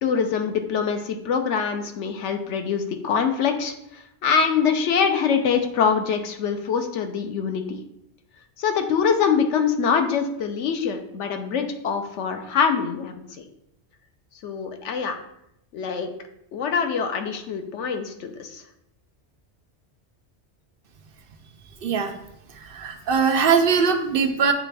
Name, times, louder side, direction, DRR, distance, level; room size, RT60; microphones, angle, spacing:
voice 1, 0.0-7.8 8.6-13.5 14.4-15.2 15.7-16.1 16.5-18.6, left 6 dB, 90° left, 6 dB, 1.0 m, -24 dB
voice 2, 21.8-22.1 22.6-24.5, right 6 dB, 60° right, 5 dB, 0.7 m, -21 dB
8.6 x 3.3 x 3.3 m, 0.80 s
omnidirectional pair, 1.2 m